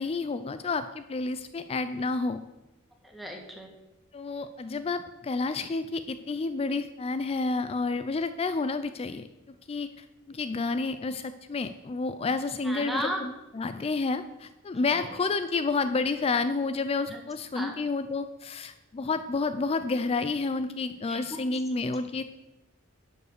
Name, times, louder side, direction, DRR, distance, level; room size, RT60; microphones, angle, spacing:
voice 1, 0.0-2.4 4.1-9.3 9.7-22.2, left 3 dB, 30° left, 11 dB, 0.4 m, -30 dB
voice 2, 3.0-3.7 12.6-13.2 14.8-15.1 17.1-17.2 17.5-17.7 21.1-21.4, equal, ahead, 0 dB, 1.6 m, -35 dB
11.0 x 5.3 x 6.6 m, 0.99 s
head